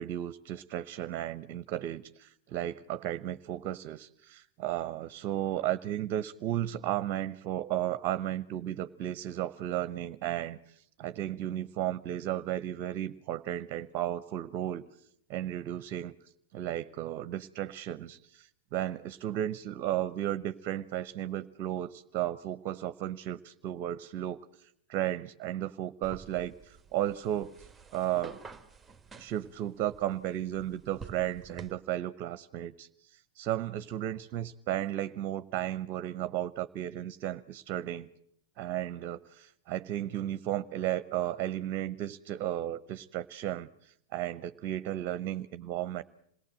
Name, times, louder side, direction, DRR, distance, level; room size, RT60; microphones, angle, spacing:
voice 1, 0.0-14.8 15.3-16.1 16.5-27.7 27.9-28.4 29.2-38.1 38.6-46.0, right 12 dB, 45° right, 13 dB, 0.8 m, -34 dB
sound 1, 26.0-31.7, right 4 dB, 10° right, 1.6 m, -50 dB
27.0 x 18.5 x 7.6 m, 0.73 s
figure-of-eight pair, 95°, 0 cm